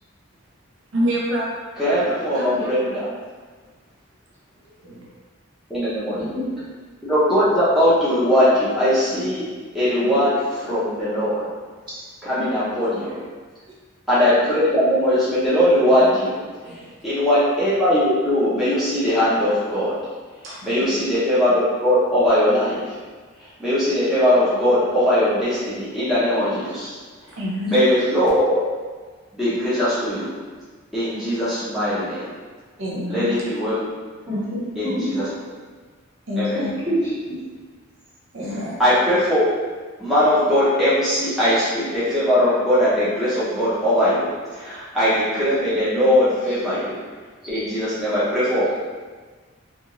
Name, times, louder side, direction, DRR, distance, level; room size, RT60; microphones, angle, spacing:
voice 1, 0.9-1.4 2.3-3.2 4.6-5.1 13.0-13.2 16.5-16.9 20.4-21.0 27.3-27.8 32.8-33.4 36.3-36.7 38.3-38.8, equal, 70° right, -4 dB, 0.5 m, -28 dB
voice 2, 1.8-3.1 5.7-6.4 7.0-9.5 9.7-11.5 12.2-13.2 14.1-20.0 20.6-23.0 23.4-27.0 27.7-28.6 29.3-30.4 30.9-32.3 33.1-33.8 34.7-35.3 36.4-36.7 38.8-39.4 40.0-47.0 47.4-48.8, equal, ahead, -13 dB, 0.7 m, -20 dB
voice 3, 6.1-6.5 12.4-12.5 34.3-35.3 36.5-37.4, equal, 20° right, -12 dB, 1.1 m, -27 dB
2.5 x 2.4 x 2.9 m, 1.4 s
head